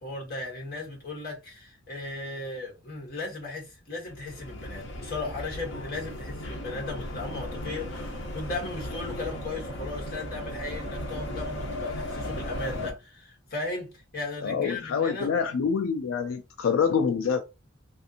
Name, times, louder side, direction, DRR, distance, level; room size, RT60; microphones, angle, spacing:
voice 1, 0.0-15.3, left 2 dB, 50° left, 1.4 m, -36 dB
sound 1, 4.1-12.9, left 1 dB, 65° left, 0.8 m, -36 dB
voice 2, 14.4-17.4, left 6 dB, 85° left, 0.3 m, -26 dB
3.3 x 2.5 x 2.8 m
head